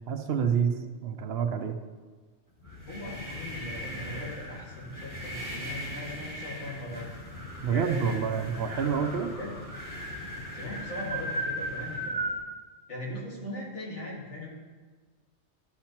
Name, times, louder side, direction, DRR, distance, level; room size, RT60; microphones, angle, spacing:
voice 1, 0.0-1.8 7.6-9.3, right 7 dB, 65° right, 7 dB, 0.9 m, -28 dB
sound 1, 2.6-12.4, equal, 15° left, 1.8 m, -37 dB
voice 2, 2.9-7.0 7.7-9.0 9.4-9.6 10.5-12.2 12.9-14.5, left 1 dB, 85° left, -4 dB, 2.3 m, -39 dB
12.0 x 5.8 x 2.9 m, 1.4 s
omnidirectional pair, 1.2 m